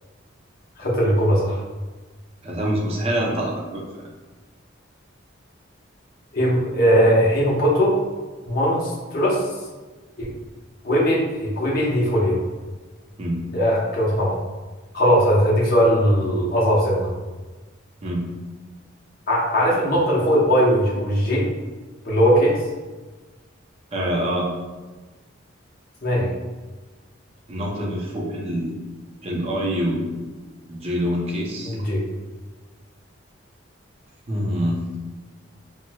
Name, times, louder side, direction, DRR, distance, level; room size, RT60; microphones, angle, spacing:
voice 1, 0.8-1.6 6.3-8.0 8.5-9.4 10.2-10.3 10.8-12.4 13.5-14.4 14.9-17.1 19.3-21.5 22.0-22.6 26.0-26.3 31.6-32.0, equal, 45° left, -5 dB, 0.7 m, -19 dB
voice 2, 2.4-3.8 13.2-13.4 18.0-18.2 23.9-24.5 27.5-28.8 29.2-30.1 30.7-31.7 34.3-34.9, equal, 30° right, -3 dB, 0.5 m, -25 dB
4.3 x 2.0 x 2.2 m, 1.3 s
head